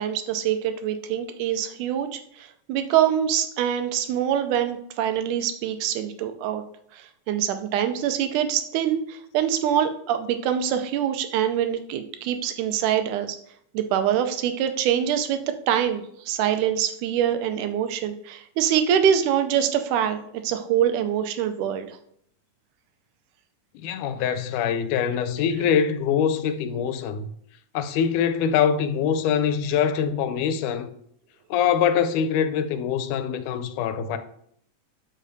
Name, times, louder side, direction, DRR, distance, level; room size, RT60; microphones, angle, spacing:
voice 1, 0.0-6.6 6.9-13.4 13.7-15.4 15.7-20.2 20.4-22.0, right 9 dB, 85° right, 2.2 m, -24 dB
voice 2, 23.8-27.3 27.7-30.9 31.5-34.2, left 8 dB, 85° left, 2.1 m, -24 dB
12.5 x 5.3 x 2.7 m
omnidirectional pair, 3.6 m